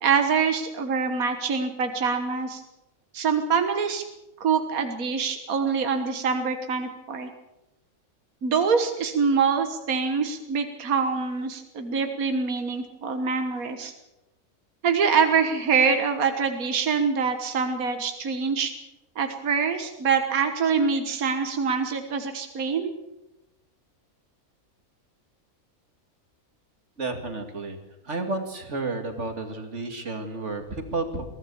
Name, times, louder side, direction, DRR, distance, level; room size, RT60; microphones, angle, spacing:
voice 1, 0.0-2.6 3.1-4.0 4.4-7.3 8.4-13.9 14.8-18.7 19.2-22.9, right 5 dB, 75° right, 6 dB, 1.9 m, -25 dB
voice 2, 27.0-27.8 28.0-31.3, right 3 dB, 55° right, 6 dB, 2.7 m, -31 dB
23.0 x 16.0 x 7.0 m, 0.98 s
omnidirectional pair, 1.5 m